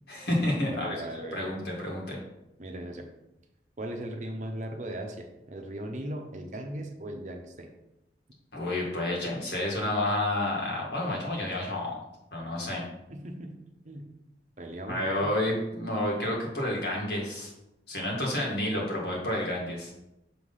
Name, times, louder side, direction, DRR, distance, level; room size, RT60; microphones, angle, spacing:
voice 1, 0.1-2.2 8.5-12.0 12.3-12.8 14.9-17.5 17.9-19.9, left 1 dB, 65° left, -2 dB, 1.9 m, -30 dB
voice 2, 0.8-1.5 2.6-3.1 3.8-7.7 13.1-13.5 13.8-14.1 14.6-15.3, right 1 dB, 40° right, 3 dB, 0.8 m, -38 dB
6.2 x 3.3 x 5.5 m, 0.90 s
head